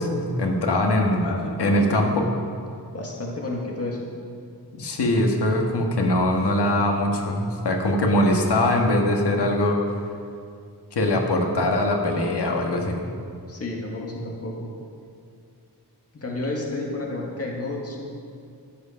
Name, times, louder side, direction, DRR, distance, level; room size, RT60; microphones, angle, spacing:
voice 1, 0.0-2.3 4.7-9.8 10.9-13.0, left 1 dB, 75° left, 1 dB, 1.6 m, -22 dB
voice 2, 2.9-4.1 13.5-14.7 16.1-18.0, left 2 dB, 35° left, -1 dB, 1.9 m, -31 dB
14.5 x 8.0 x 5.7 m, 2.3 s
wide cardioid pair, 145°, 41 cm